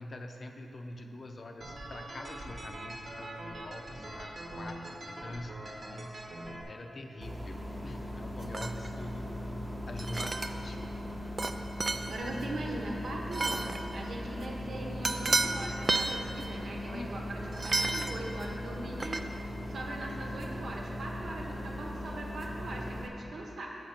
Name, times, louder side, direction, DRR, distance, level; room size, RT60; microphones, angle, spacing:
voice 1, 0.0-5.5 5.8-9.3 9.9-10.8 16.9-17.3, left 1 dB, 50° left, 4 dB, 0.5 m, -45 dB
sound 1, 1.6-6.6, right 1 dB, 55° right, 0.9 m, -43 dB
sound 2, 7.2-23.1, equal, 10° right, 0.7 m, -39 dB
sound 3, 8.5-8.9 10.0-10.6 11.4-11.5 11.8-12.1 13.3-13.8 15.0-15.5 15.8-16.2 17.5-18.2 19.0-19.2, right 3 dB, 35° right, 0.3 m, -31 dB
voice 2, 12.1-19.2 19.4-23.7, right 1 dB, 80° right, -1 dB, 1.0 m, -40 dB
6.4 x 5.1 x 5.7 m, 3.0 s
wide cardioid pair, 90°, 0 cm